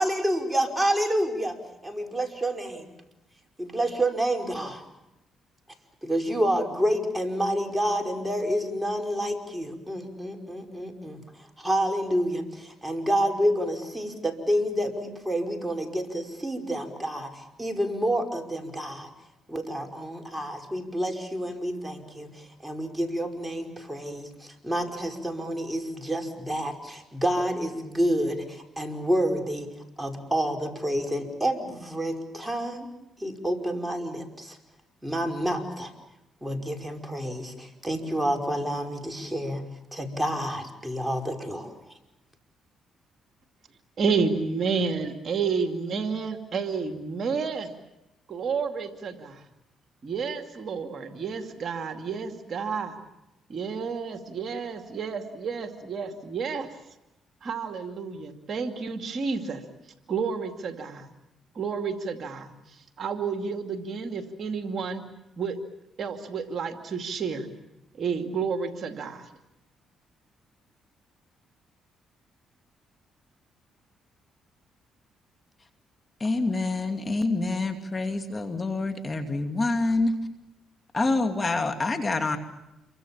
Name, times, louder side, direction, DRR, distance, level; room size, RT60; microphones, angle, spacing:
voice 1, 0.0-1.6 1.8-2.9 3.6-4.8 6.0-11.2 11.6-19.1 19.5-29.7 30.0-32.9 33.2-34.6 35.0-35.9 36.4-41.7, equal, 10° right, 4 dB, 5.1 m, -28 dB
voice 2, 44.0-47.7 48.3-49.4 50.0-53.0 53.5-56.7 57.4-59.6 60.1-61.1 61.5-62.5 63.0-65.0 65.4-65.6 66.0-67.5 68.0-69.2, right 5 dB, 55° right, 6 dB, 2.4 m, -30 dB
voice 3, 76.2-80.1 80.9-82.4, left 2 dB, 30° left, 6 dB, 2.5 m, -26 dB
28.0 x 24.0 x 7.3 m, 0.91 s
supercardioid pair, 70°, 0 cm